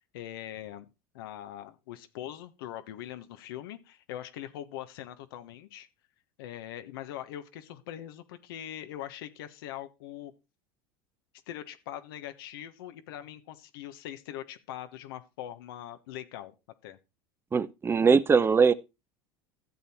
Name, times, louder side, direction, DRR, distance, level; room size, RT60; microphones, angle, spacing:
voice 1, 0.1-0.9 1.1-5.9 6.4-10.3 11.5-16.5 16.8-17.0, left 12 dB, 80° left, 1.3 m, -42 dB
voice 2, 17.5-18.7, right 5 dB, 20° right, 0.8 m, -21 dB
13.5 x 7.1 x 4.5 m
supercardioid pair, 105°, 12 cm